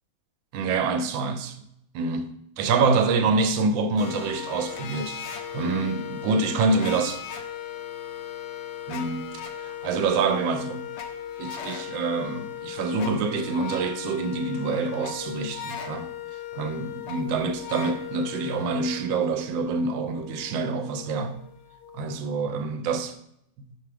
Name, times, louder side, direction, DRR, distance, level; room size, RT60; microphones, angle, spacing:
voice 1, 0.5-1.6 1.9-7.2 8.9-9.3 9.6-10.8 11.4-16.1 16.5-21.4 21.9-23.1, right 4 dB, 85° right, 1.3 m, -26 dB
sound 1, 4.0-22.2, left 9 dB, 70° left, 1.3 m, -37 dB
5.9 x 4.8 x 3.3 m
omnidirectional pair, 2.0 m